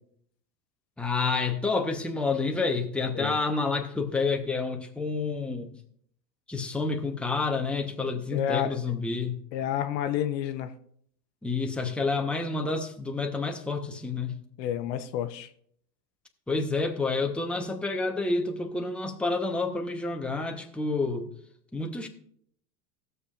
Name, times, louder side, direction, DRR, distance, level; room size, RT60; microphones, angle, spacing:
voice 1, 1.0-5.7 6.5-9.4 11.4-14.3 16.5-21.3 21.7-22.1, left 3 dB, ahead, 0.9 m, -29 dB
voice 2, 8.3-8.8 9.5-10.7 14.6-15.5, left 10 dB, 80° left, 0.9 m, -29 dB
18.0 x 6.8 x 2.5 m
hypercardioid pair, 105°, 50 cm